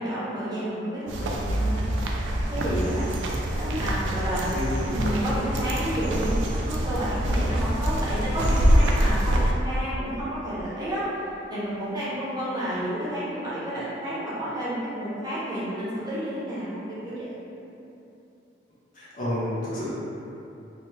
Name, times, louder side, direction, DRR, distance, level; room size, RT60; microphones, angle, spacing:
voice 1, 0.0-1.9 2.5-3.1 3.5-4.4 4.9-11.0 11.5-17.4, right 1 dB, 20° right, -10 dB, 0.6 m, -31 dB
sound 1, 1.1-9.5, equal, 85° right, 0.3 m, -25 dB
voice 2, 4.2-5.0 18.9-19.9, left 1 dB, 45° left, -11 dB, 0.8 m, -30 dB
2.9 x 2.0 x 3.2 m, 2.9 s
head